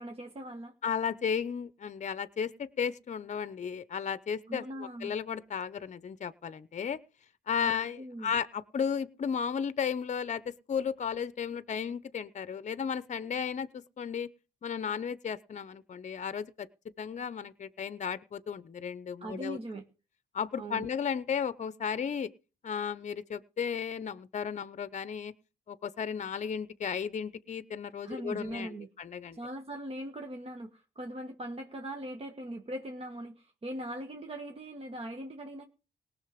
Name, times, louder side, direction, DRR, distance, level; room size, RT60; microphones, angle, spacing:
voice 1, 0.0-0.7 4.5-5.1 7.6-7.7 8.0-8.3 19.2-19.8 20.6-20.9 28.0-28.9 29.3-35.7, right 1 dB, 35° right, 4 dB, 1.6 m, -40 dB
voice 2, 0.8-7.0 7.5-14.3 14.6-16.7 17.0-19.6 20.3-22.3 22.6-25.3 25.7-29.4, left 7 dB, 40° left, 16 dB, 0.8 m, -34 dB
18.5 x 6.5 x 5.2 m, 0.33 s
cardioid pair, 80°, 18 cm